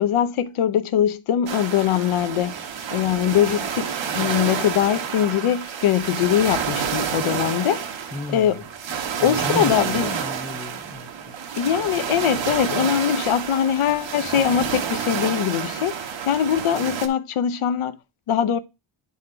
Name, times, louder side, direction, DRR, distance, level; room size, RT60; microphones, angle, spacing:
voice 1, 0.0-2.5 2.9-7.8 8.3-8.6 9.2-10.1 11.6-16.0 16.3-18.0 18.3-18.6, left 10 dB, 80° left, 0.8 m, -22 dB
sound 1, 1.5-17.1, right 7 dB, 65° right, 1.1 m, -29 dB
voice 2, 8.1-8.7 9.2-11.4, left 2 dB, 15° left, 0.4 m, -34 dB
8.7 x 4.3 x 4.8 m
wide cardioid pair, 165°, 49 cm